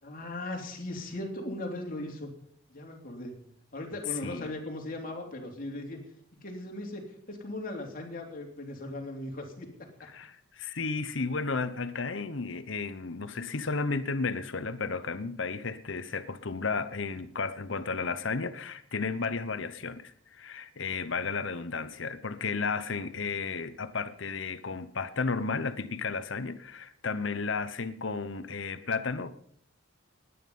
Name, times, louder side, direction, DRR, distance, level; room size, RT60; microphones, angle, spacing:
voice 1, 0.0-2.3 2.7-3.3 3.7-6.0 6.4-9.9 21.1-21.3, left 1 dB, 40° left, 1 dB, 3.1 m, -38 dB
voice 2, 10.1-29.4, left 4 dB, 65° left, 13 dB, 0.9 m, -33 dB
20.0 x 9.6 x 5.5 m, 0.65 s
head